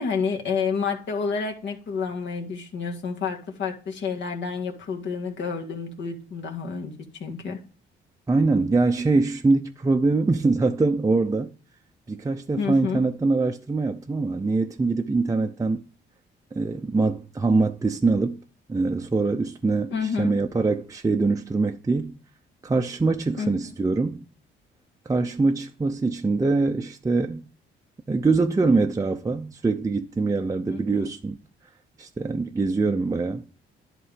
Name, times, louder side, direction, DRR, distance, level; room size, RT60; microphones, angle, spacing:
voice 1, 0.0-7.6 12.6-13.1 19.9-20.4 23.4-23.8 30.6-31.2, left 5 dB, 70° left, 1.8 m, -29 dB
voice 2, 8.3-11.5 12.1-15.8 16.5-18.4 18.7-19.9 20.2-22.2 22.6-24.3 25.1-27.5 28.1-31.4 32.0-33.4, right 3 dB, 15° right, 0.5 m, -23 dB
11.0 x 3.8 x 5.1 m
cardioid pair, 90°, 20 cm